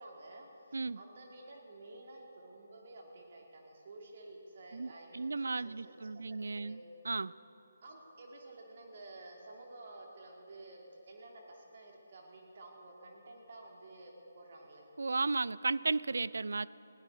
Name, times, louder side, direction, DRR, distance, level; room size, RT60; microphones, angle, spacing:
voice 1, 0.0-6.8 7.8-14.9, right 2 dB, 45° right, 0 dB, 2.5 m, -52 dB
voice 2, 4.7-6.8 7.0-7.3 15.0-16.7, right 3 dB, 65° right, 19 dB, 0.4 m, -34 dB
21.0 x 16.5 x 4.0 m, 2.8 s
figure-of-eight pair, 145°, 0 cm